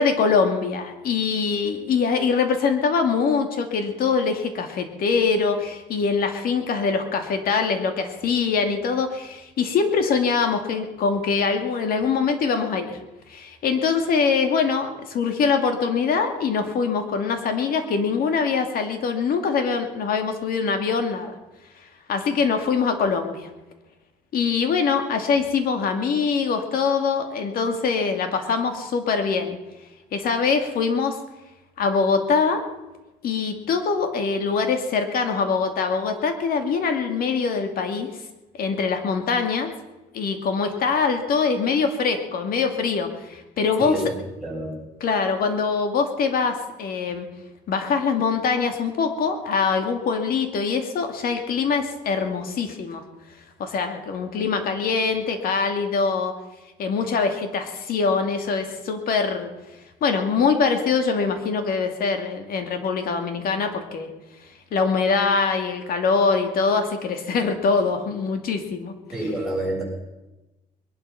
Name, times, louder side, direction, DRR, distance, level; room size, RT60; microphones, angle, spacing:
voice 1, 0.0-13.0 13.3-21.3 22.1-23.5 24.3-29.6 30.1-31.2 31.8-32.6 33.2-38.1 38.6-39.7 40.1-44.0 45.0-47.3 47.7-53.0 53.6-56.3 56.8-59.5 60.0-64.1 64.7-68.9, left 5 dB, 60° left, 6 dB, 2.5 m, -23 dB
voice 2, 44.4-44.7 69.1-69.8, right 1 dB, ahead, -5 dB, 7.8 m, -27 dB
21.5 x 11.5 x 5.9 m, 1.1 s
cardioid pair, 110°, 17 cm